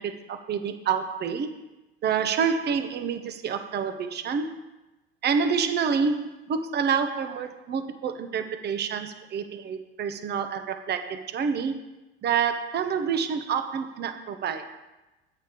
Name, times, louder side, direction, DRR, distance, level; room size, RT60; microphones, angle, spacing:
voice 1, 0.0-1.5 2.0-4.6 5.2-11.8 12.2-14.8, right 6 dB, 35° right, 8 dB, 0.8 m, -28 dB
8.1 x 6.9 x 4.5 m, 1.0 s
hypercardioid pair, 80°, 31 cm